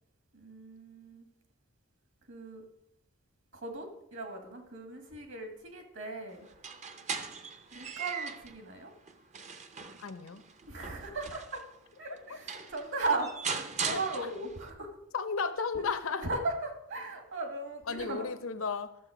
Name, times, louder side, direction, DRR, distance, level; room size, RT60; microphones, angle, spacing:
voice 1, 0.3-1.3 2.3-2.6 3.5-6.5 7.7-8.9 10.7-11.6 12.0-13.3 13.8-15.0 15.7-15.8 16.2-18.3, right 3 dB, 60° right, 5 dB, 2.0 m, -37 dB
sound 1, 6.5-8.6 9.1-11.6 12.2-12.3 12.5-14.7, right 5 dB, 30° right, 0.7 m, -39 dB
voice 2, 10.0-10.4 13.9-14.3 15.1-16.3 17.9-18.9, left 5 dB, 65° left, 10 dB, 0.8 m, -34 dB
12.5 x 7.1 x 5.0 m, 0.78 s
head